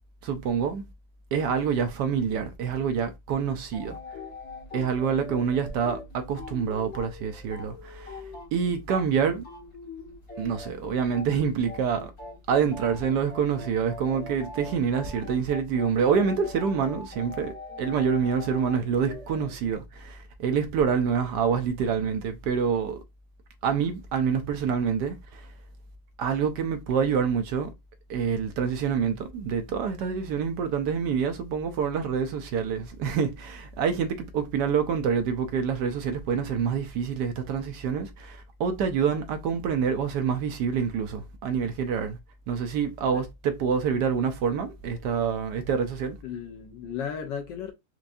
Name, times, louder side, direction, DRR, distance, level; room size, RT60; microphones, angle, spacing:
voice 1, 0.2-0.8 1.3-4.0 4.7-8.2 8.5-9.4 10.4-12.1 12.5-23.0 23.6-25.5 26.2-27.7 28.1-42.2 42.5-46.2, right 6 dB, 70° right, 1.1 m, -27 dB
sound 1, 3.7-9.1 9.4-19.8, left 3 dB, 50° left, 1.8 m, -42 dB
voice 2, 46.2-47.7, left 7 dB, 75° left, 1.3 m, -35 dB
4.6 x 2.6 x 2.5 m
omnidirectional pair, 2.0 m